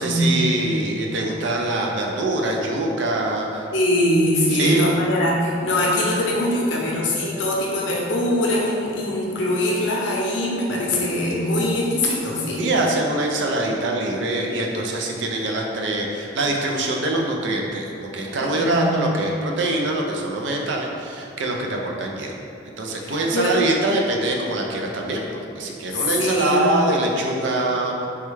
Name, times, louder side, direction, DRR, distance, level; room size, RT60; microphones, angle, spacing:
voice 1, 0.0-3.7 4.5-5.0 12.6-22.3 22.8-28.1, right 2 dB, 75° right, 0 dB, 0.4 m, -24 dB
voice 2, 3.7-12.7 18.4-19.0 23.0-23.5 25.9-26.9, left 1 dB, 80° left, -3 dB, 0.6 m, -22 dB
3.3 x 2.2 x 3.1 m, 2.6 s
head